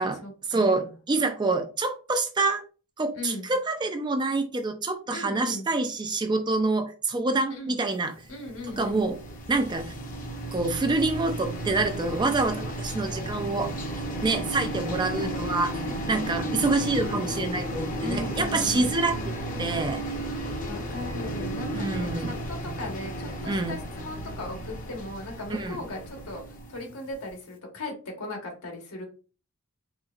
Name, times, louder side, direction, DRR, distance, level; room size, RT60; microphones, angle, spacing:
voice 1, 0.0-0.9 3.1-3.5 5.1-5.7 7.5-7.8 8.3-9.1 14.8-16.0 18.0-19.0 20.6-26.4 26.7-29.0, left 2 dB, 80° left, 1 dB, 1.3 m, -38 dB
voice 2, 0.5-2.6 3.0-8.1 8.8-9.2 9.5-9.9 10.5-13.7 14.2-15.7 16.1-20.0 21.7-22.3 23.5-23.8 25.5-25.8, right 3 dB, 20° right, 5 dB, 0.4 m, -26 dB
sound 1, 8.2-27.2, right 1 dB, 35° left, 0.7 m, -33 dB
4.4 x 2.6 x 2.4 m, 0.36 s
head